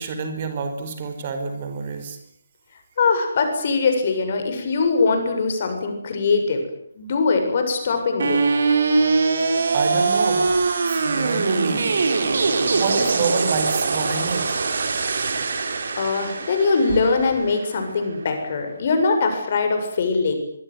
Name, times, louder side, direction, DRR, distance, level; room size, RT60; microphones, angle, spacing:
voice 1, 0.0-2.2 9.7-10.5 10.9-11.9 12.7-14.7, right 4 dB, 35° right, 7 dB, 5.1 m, -28 dB
voice 2, 3.0-6.6 7.0-8.4 15.7-20.3, left 4 dB, 40° left, 6 dB, 7.5 m, -22 dB
sound 1, 8.2-18.2, right 4 dB, 55° right, 4.4 m, -22 dB
25.5 x 23.5 x 9.5 m, 0.74 s
figure-of-eight pair, 145°, 0 cm